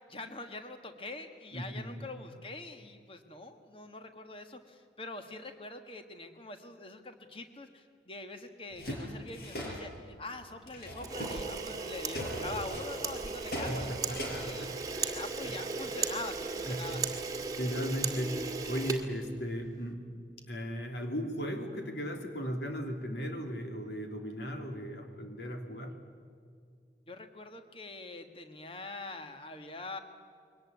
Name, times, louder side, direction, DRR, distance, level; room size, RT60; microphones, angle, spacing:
voice 1, 0.0-13.9 14.3-14.7 15.0-17.0 27.1-30.0, left 2 dB, 30° left, 7 dB, 1.5 m, -44 dB
voice 2, 1.5-1.9 13.7-15.1 15.4-15.5 16.7-17.0 17.6-18.4 18.7-20.1 20.5-25.9, equal, 75° left, 4 dB, 3.0 m, -37 dB
sound 1, 8.7-10.0 10.7-11.5 11.8-14.3, equal, 60° left, 5.4 m, -39 dB
Camera, 11.0-19.7, right 4 dB, 20° right, 1.8 m, -37 dB
22.0 x 19.0 x 9.6 m, 2.2 s
head